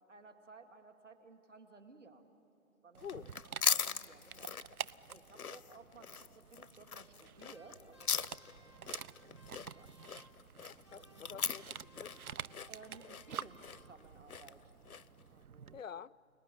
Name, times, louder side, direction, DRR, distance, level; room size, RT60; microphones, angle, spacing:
voice 1, 0.1-2.3 2.8-9.9 10.9-11.5 12.7-14.6 15.3-15.8, right 4 dB, 55° right, 2.2 m, -58 dB
Dog, 2.9-15.8, right 7 dB, 80° right, 0.7 m, -49 dB
sound 1, 3.0-15.2, left 6 dB, 90° left, 0.8 m, -40 dB
sound 2, 7.4-10.6 10.8-14.2, equal, 20° right, 0.9 m, -66 dB
voice 2, 10.7-12.1 15.7-16.1, left 7 dB, 65° left, 0.5 m, -48 dB
29.0 x 19.5 x 9.6 m
figure-of-eight pair, 175°, 43 cm